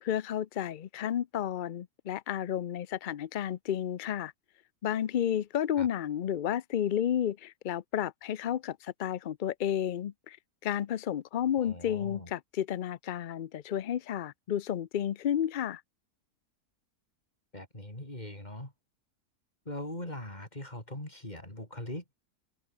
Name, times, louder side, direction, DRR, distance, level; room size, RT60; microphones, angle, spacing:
voice 1, 0.0-4.3 4.8-10.4 10.6-15.8, left 10 dB, 80° left, 0.4 m, -31 dB
voice 2, 11.6-12.3 17.5-18.7 19.7-22.0, left 1 dB, 25° left, 6.2 m, -41 dB
omnidirectional pair, 1.6 m